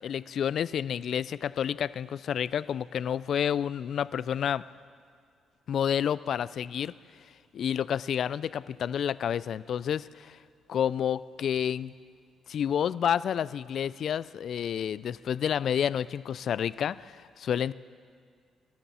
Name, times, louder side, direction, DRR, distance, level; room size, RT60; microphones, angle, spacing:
voice 1, 0.0-4.6 5.7-6.9 7.5-10.4 10.7-11.9 12.5-17.7, left 9 dB, 65° left, 18 dB, 0.3 m, -29 dB
22.0 x 11.5 x 4.3 m, 2.1 s
cardioid pair, 90°, 0 cm